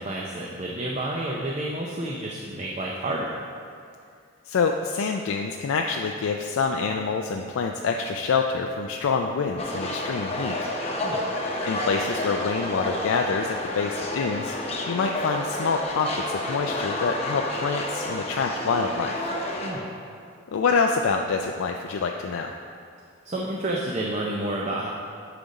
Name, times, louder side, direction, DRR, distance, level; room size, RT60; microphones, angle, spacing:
voice 1, 0.0-3.3 11.0-11.2 19.6-19.9 23.2-24.9, right 1 dB, 35° right, -2 dB, 0.5 m, -30 dB
voice 2, 4.5-10.7 11.6-14.6 14.9-19.2 20.5-22.5, left 4 dB, 80° left, 3 dB, 0.4 m, -26 dB
sound 1, 9.6-19.7, left 1 dB, 30° left, 0.8 m, -30 dB
9.2 x 5.0 x 4.0 m, 2.3 s
head